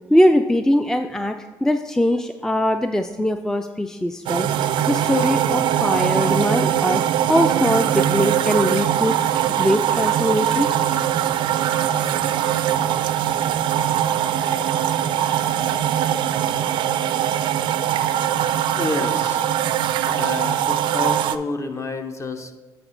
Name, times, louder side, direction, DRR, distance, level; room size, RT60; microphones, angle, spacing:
voice 1, 0.1-10.7, equal, 5° left, 8 dB, 0.3 m, -21 dB
sound 1, 4.3-21.4, right 10 dB, 70° right, 0.3 m, -21 dB
voice 2, 18.8-19.5 20.1-22.5, left 3 dB, 35° left, 6 dB, 0.8 m, -29 dB
9.0 x 4.3 x 3.9 m, 1.3 s
supercardioid pair, 60°, 9 cm